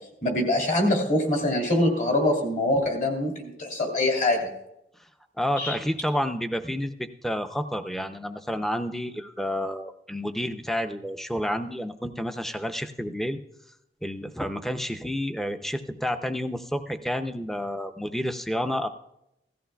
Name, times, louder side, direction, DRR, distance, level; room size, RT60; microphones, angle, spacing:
voice 1, 0.0-4.5 5.6-5.7, left 1 dB, 45° left, 2 dB, 2.6 m, -24 dB
voice 2, 5.4-13.4 14.0-18.9, equal, ahead, 8 dB, 0.5 m, -30 dB
17.0 x 14.0 x 2.3 m, 0.82 s
head